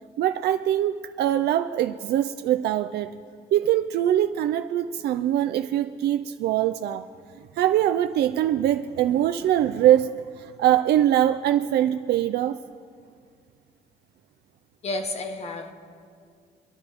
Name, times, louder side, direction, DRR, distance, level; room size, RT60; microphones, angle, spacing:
voice 1, 0.2-3.1 3.5-7.1 7.3-12.6, right 11 dB, 85° right, 0.4 m, -23 dB
voice 2, 14.8-15.7, left 2 dB, 40° left, 1.0 m, -31 dB
24.0 x 11.5 x 3.5 m
cardioid pair, 165°, 16 cm